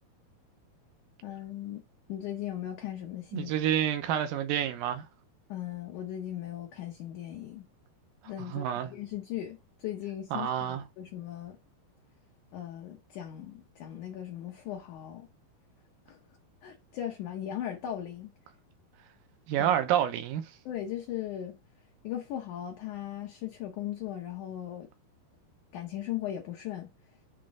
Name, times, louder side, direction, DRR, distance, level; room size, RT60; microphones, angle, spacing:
voice 1, 1.2-1.8 2.1-3.5 5.5-7.7 8.2-11.6 12.5-15.3 16.1-16.2 16.6-18.3 19.6-19.7 20.7-21.6 22.0-24.9 25.7-26.9, left 11 dB, 75° left, 1.9 m, -38 dB
voice 2, 3.3-5.0 8.4-8.9 10.3-10.8 19.5-20.4, right 10 dB, 75° right, 2.4 m, -28 dB
7.5 x 3.2 x 4.9 m
omnidirectional pair, 4.6 m